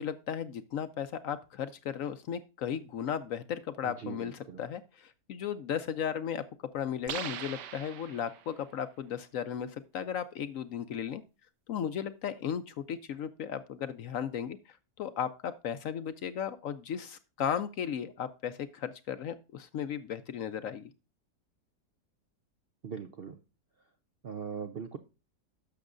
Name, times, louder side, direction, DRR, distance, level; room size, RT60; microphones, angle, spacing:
voice 1, 0.0-6.4 6.7-11.2 11.7-20.9, left 8 dB, 65° left, 12 dB, 0.9 m, -35 dB
voice 2, 3.8-4.6 22.8-23.4 24.2-25.0, right 6 dB, 60° right, 7 dB, 0.6 m, -40 dB
sound 1, 7.1-8.6, right 10 dB, 85° right, 1.4 m, -40 dB
11.5 x 6.8 x 2.5 m, 0.29 s
omnidirectional pair, 1.8 m